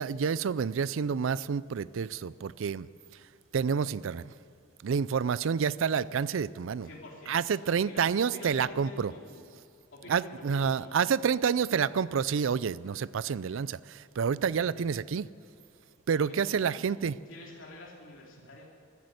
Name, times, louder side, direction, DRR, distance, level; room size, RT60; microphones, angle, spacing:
voice 1, 0.0-2.9 3.5-4.3 4.8-6.9 7.3-9.1 10.1-15.3 16.1-17.1, right 6 dB, 70° right, 19 dB, 0.4 m, -28 dB
voice 2, 6.8-9.4 9.9-11.1 14.7-14.9 16.2-16.9 17.3-18.7, left 2 dB, 70° left, -2 dB, 3.0 m, -48 dB
14.0 x 10.5 x 9.7 m, 2.3 s
head